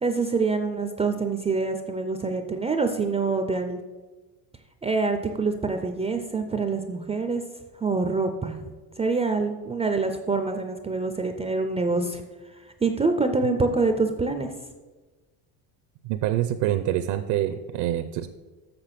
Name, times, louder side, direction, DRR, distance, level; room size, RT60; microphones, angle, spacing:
voice 1, 0.0-3.8 4.8-7.4 7.8-8.6 9.0-12.2 12.8-14.5, right 3 dB, 15° right, 6 dB, 0.4 m, -25 dB
voice 2, 16.0-18.3, right 12 dB, 70° right, 10 dB, 0.6 m, -26 dB
6.9 x 6.6 x 5.7 m, 1.2 s
cardioid pair, 125°, 45 cm